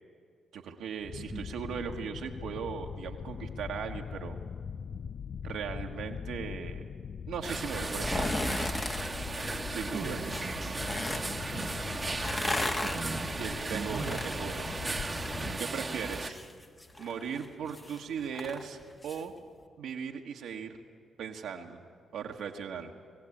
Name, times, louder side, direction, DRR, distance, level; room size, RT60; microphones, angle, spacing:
voice 1, 0.5-4.4 5.4-6.9 7.3-8.8 9.7-10.2 13.4-14.9 15.6-16.4 17.0-19.3 19.8-20.8 21.2-21.8 22.1-22.9, right 7 dB, 75° right, 2 dB, 1.5 m, -38 dB
sound 1, 1.0-15.6, left 7 dB, 60° left, 0.5 m, -41 dB
sound 2, 7.4-16.3, right 3 dB, 30° right, 1.2 m, -36 dB
sound 3, 7.9-9.1 10.2-11.3 12.0-15.5 15.8-19.2 19.6-19.7, left 2 dB, 25° left, 1.6 m, -36 dB
voice 2, 9.9-10.8 11.5-11.7 12.8-13.4 13.7-14.2 15.3-15.8, right 5 dB, 50° right, 4 dB, 1.2 m, -41 dB
20.5 x 15.5 x 8.6 m, 2.1 s
supercardioid pair, 50°, 0 cm